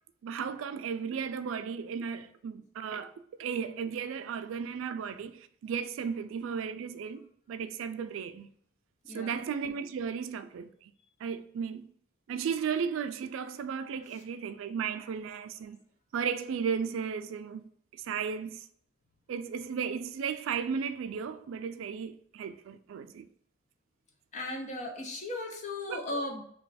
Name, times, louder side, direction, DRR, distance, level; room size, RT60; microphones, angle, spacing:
voice 1, 0.2-3.1 3.4-8.5 9.1-10.7 11.2-11.8 12.3-15.8 16.1-17.6 18.0-18.6 19.3-23.3 25.9-26.0, right 6 dB, 75° right, 0.3 m, -35 dB
voice 2, 9.1-9.4 24.3-26.4, left 2 dB, 35° left, 0.6 m, -36 dB
3.1 x 2.3 x 4.0 m
head